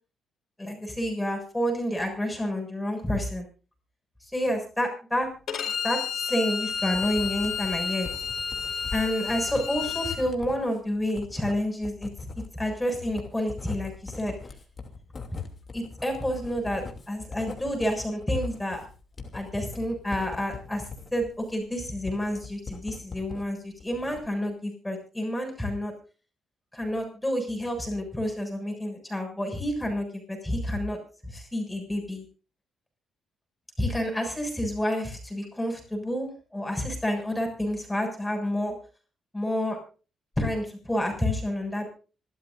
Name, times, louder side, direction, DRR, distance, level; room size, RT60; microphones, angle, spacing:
voice 1, 0.6-3.4 4.3-5.3 5.8-8.1 8.9-12.1 12.5-14.3 15.3-15.4 15.7-18.8 19.3-25.9 26.7-32.2 33.8-38.7 39.3-39.8 40.4-41.9, left 1 dB, 10° left, 3 dB, 6.8 m, -29 dB
Bowed string instrument, 5.5-10.2, left 7 dB, 65° left, 4.9 m, -31 dB
Writing, 6.9-23.5 23.8-24.5, left 4 dB, 35° left, 2.9 m, -42 dB
25.5 x 13.0 x 2.7 m, 0.36 s
cardioid pair, 90°, 0 cm